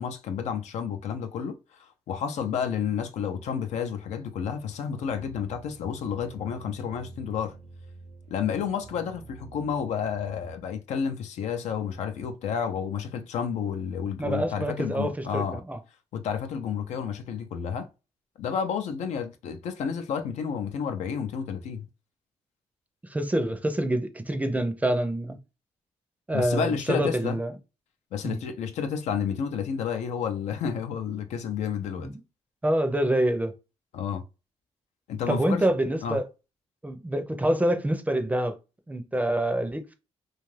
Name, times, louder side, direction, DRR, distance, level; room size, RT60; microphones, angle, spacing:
voice 1, 0.0-7.6 8.3-15.6 16.1-17.9 18.4-21.9 26.3-27.4 28.1-32.1 33.9-34.2 35.1-35.6 36.0-36.2, left 7 dB, 75° left, 0.5 m, -31 dB
sound 1, 5.0-10.6, right 4 dB, 65° right, 0.7 m, -48 dB
voice 2, 14.2-15.8 23.0-25.4 26.3-27.5 28.2-28.4 32.0-32.1 32.6-33.5 35.3-36.3 36.8-38.6 38.9-39.9, right 1 dB, 15° right, 0.5 m, -26 dB
2.5 x 2.4 x 3.2 m
cardioid pair, 75°, 12 cm